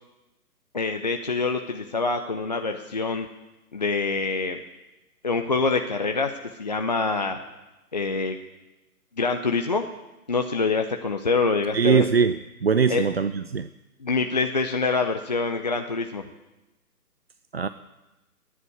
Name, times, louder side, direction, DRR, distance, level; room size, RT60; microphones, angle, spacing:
voice 1, 0.7-3.3 3.7-4.6 5.2-6.3 6.6-7.4 7.9-8.4 9.2-9.8 10.3-12.1 12.9-13.1 14.0-16.2, left 4 dB, 30° left, 0.5 m, -25 dB
voice 2, 11.7-13.7 17.5-17.7, right 6 dB, 45° right, 0.4 m, -22 dB
14.5 x 10.0 x 9.5 m
figure-of-eight pair, 145°, 46 cm